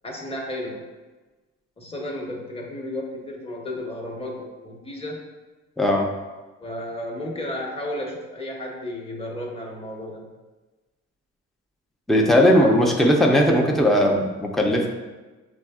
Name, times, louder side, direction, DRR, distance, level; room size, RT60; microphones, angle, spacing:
voice 1, 0.0-0.8 1.8-5.2 6.6-10.3 12.2-13.0, left 1 dB, 20° left, -2 dB, 1.1 m, -33 dB
voice 2, 5.8-6.1 12.1-14.9, equal, ahead, 0 dB, 0.6 m, -18 dB
6.1 x 3.4 x 2.3 m, 1.2 s
cardioid pair, 90°, 30 cm